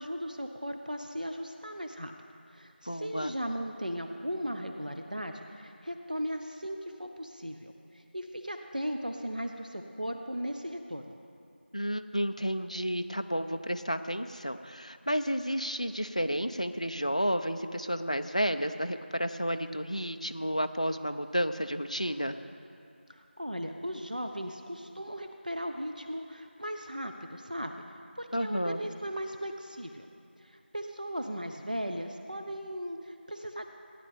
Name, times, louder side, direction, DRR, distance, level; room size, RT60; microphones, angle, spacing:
voice 1, 0.0-2.1 2.5-11.2 23.1-27.7 28.2-30.1 30.4-33.7, equal, 45° right, 4 dB, 0.5 m, -37 dB
voice 2, 2.9-3.3 11.7-22.4 28.3-28.8, equal, 35° left, 9 dB, 0.4 m, -31 dB
16.0 x 9.9 x 3.4 m, 2.5 s
figure-of-eight pair, 180°, 6 cm